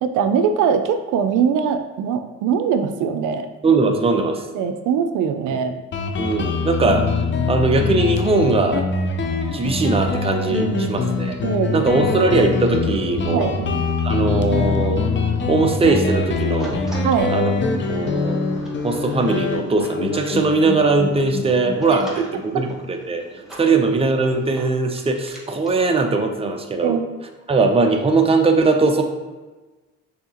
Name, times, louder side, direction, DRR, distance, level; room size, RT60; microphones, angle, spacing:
voice 1, 0.0-3.5 4.5-5.8 10.5-11.1 11.4-12.0 13.3-13.8 17.0-17.3 21.9-22.0 22.5-22.6 23.7-23.8 26.8-27.0, right 7 dB, 85° right, 8 dB, 0.5 m, -22 dB
voice 2, 3.6-4.5 6.2-7.2 7.5-8.8 9.5-11.4 11.7-13.5 14.0-15.1 15.5-16.8 17.3-17.5 17.9-18.4 18.8-23.2 23.6-27.0 27.5-29.0, right 3 dB, 20° right, 4 dB, 0.6 m, -20 dB
Guitar, 5.9-23.1, left 4 dB, 40° left, 0.6 m, -24 dB
sound 1, 16.6-25.8, equal, ahead, 1.1 m, -42 dB
6.3 x 2.8 x 2.8 m, 1.2 s
cardioid pair, 90°, 30 cm